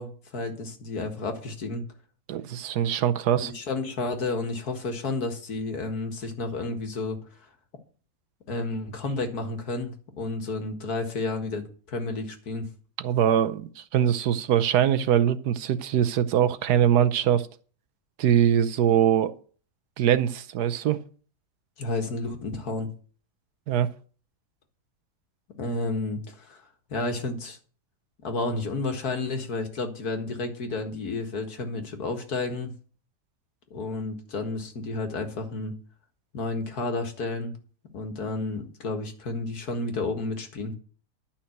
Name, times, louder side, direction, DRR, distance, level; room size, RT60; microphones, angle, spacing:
voice 1, 0.0-1.8 3.4-7.2 8.5-12.7 21.8-22.9 25.6-26.6 26.9-27.6 28.2-32.7 33.7-35.8 36.3-37.6 37.9-40.7, left 3 dB, 65° left, 2.2 m, -31 dB
voice 2, 2.3-3.5 13.0-17.5 18.2-19.3 20.0-21.0 23.7-23.9, right 10 dB, 75° right, 1.3 m, -22 dB
11.5 x 5.9 x 7.9 m
omnidirectional pair, 1.8 m